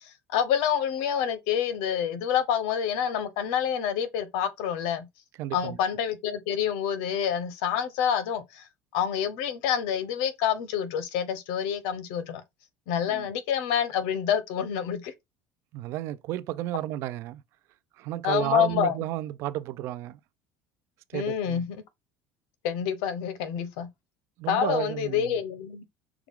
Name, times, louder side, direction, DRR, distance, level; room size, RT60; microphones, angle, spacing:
voice 1, 0.0-5.1 5.5-8.7 8.9-12.4 12.9-15.1 18.2-18.9 21.1-21.7 22.6-23.9 24.5-25.8, left 9 dB, 80° left, 0.9 m, -27 dB
voice 2, 5.4-5.8 13.1-13.3 15.7-17.4 18.0-20.2 21.1-21.7 24.4-25.3, right 14 dB, 55° right, 0.4 m, -32 dB
5.9 x 2.3 x 3.6 m
cardioid pair, 145°, 5 cm